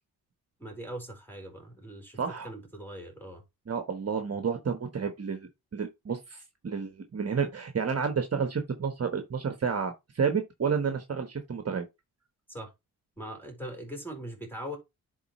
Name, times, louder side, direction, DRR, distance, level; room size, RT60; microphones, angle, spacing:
voice 1, 0.6-2.2 2.4-3.4 12.5-12.7 13.2-14.8, equal, 5° left, 4.2 m, -41 dB
voice 2, 2.2-2.5 3.7-11.9, right 6 dB, 40° right, 1.2 m, -31 dB
10.5 x 4.1 x 3.1 m
cardioid pair, 70°, 38 cm